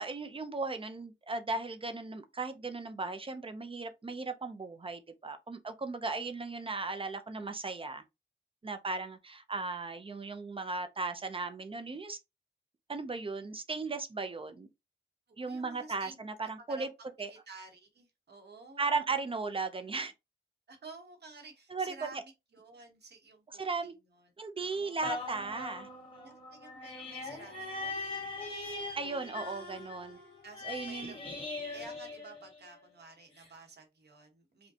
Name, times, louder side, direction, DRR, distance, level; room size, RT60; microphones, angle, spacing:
voice 1, 0.0-8.0 8.6-12.2 12.9-14.7 15.4-16.9 17.2-17.3 18.8-20.1 21.7-22.2 23.5-23.9 24.4-25.9 29.0-30.2 30.6-31.1, right 3 dB, 25° right, 0.5 m, -36 dB
voice 2, 15.3-16.2 16.6-19.0 20.7-24.3 24.6-25.0 26.2-28.3 28.8-29.2 30.4-31.1 31.7-34.7, right 3 dB, 60° right, 1.1 m, -52 dB
sound 1, 25.0-32.9 33.4-33.5, left 2 dB, 25° left, 1.6 m, -41 dB
5.0 x 2.2 x 2.7 m
wide cardioid pair, 130°, 20 cm